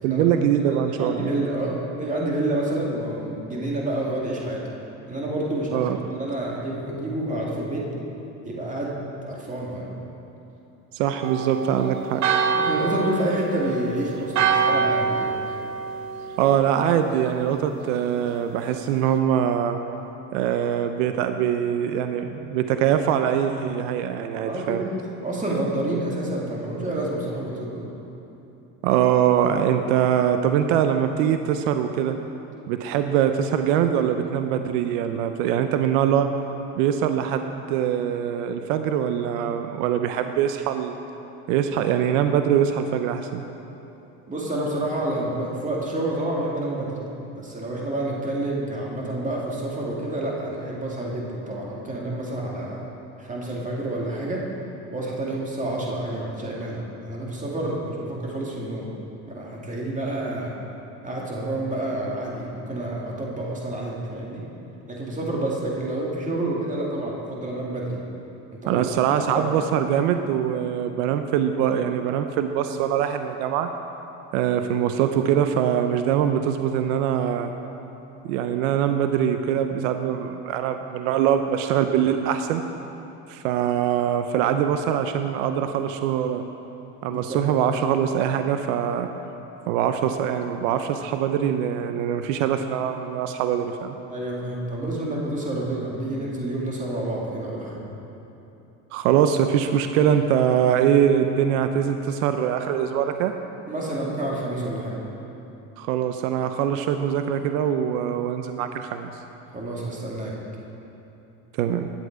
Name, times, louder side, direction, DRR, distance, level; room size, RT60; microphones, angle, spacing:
voice 1, 0.0-1.3 5.7-6.0 10.9-12.2 16.4-19.8 20.3-24.8 28.8-32.1 32.7-36.3 36.8-41.0 41.5-43.4 68.7-73.7 74.3-77.5 78.2-82.6 83.3-86.4 87.0-89.1 89.7-94.0 98.9-103.3 105.8-109.1 111.6-111.9, right 9 dB, 80° right, 8 dB, 0.6 m, -23 dB
voice 2, 0.6-4.6 5.1-7.8 8.4-9.9 12.5-15.4 24.4-27.9 44.3-47.0 47.3-52.8 53.2-54.5 54.9-58.9 59.3-60.5 61.0-64.4 64.9-68.0 68.5-68.9 69.3-69.5 87.1-87.4 94.1-97.8 103.7-105.0 109.5-110.3, right 1 dB, 20° right, -3 dB, 2.2 m, -29 dB
Church bell, 11.2-16.9, right 5 dB, 45° right, 0.8 m, -26 dB
10.5 x 7.9 x 4.7 m, 2.9 s
supercardioid pair, 95°, 38 cm